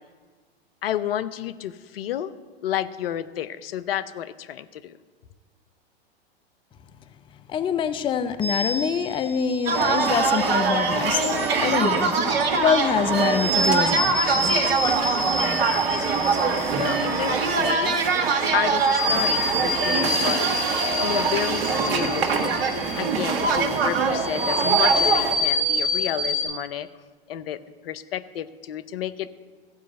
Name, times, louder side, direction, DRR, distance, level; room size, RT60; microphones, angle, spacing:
voice 1, 0.8-2.3 2.6-5.0 16.7-18.0 18.5-20.6 21.0-22.6 23.0-26.9 27.3-29.3, left 10 dB, 70° left, 14 dB, 0.7 m, -30 dB
voice 2, 7.5-14.6, left 7 dB, 15° left, 11 dB, 0.5 m, -25 dB
sound 1, 8.4-26.4, equal, 85° left, 4.4 m, -29 dB
sound 2, 9.7-25.4, right 4 dB, 70° right, 1.4 m, -23 dB
15.0 x 5.1 x 7.7 m, 1.5 s
hypercardioid pair, 105°, 31 cm